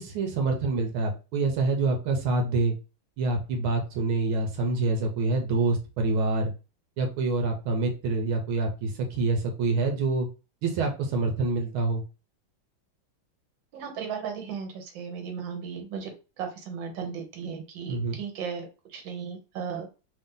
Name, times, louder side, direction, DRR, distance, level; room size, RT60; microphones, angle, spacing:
voice 1, 0.0-2.7 3.2-6.5 7.0-10.3 10.6-12.0 17.9-18.2, right 3 dB, 85° right, 3 dB, 1.6 m, -26 dB
voice 2, 13.7-16.1 16.4-19.9, right 6 dB, 70° right, 3 dB, 1.6 m, -36 dB
3.6 x 2.7 x 3.6 m, 0.31 s
omnidirectional pair, 2.2 m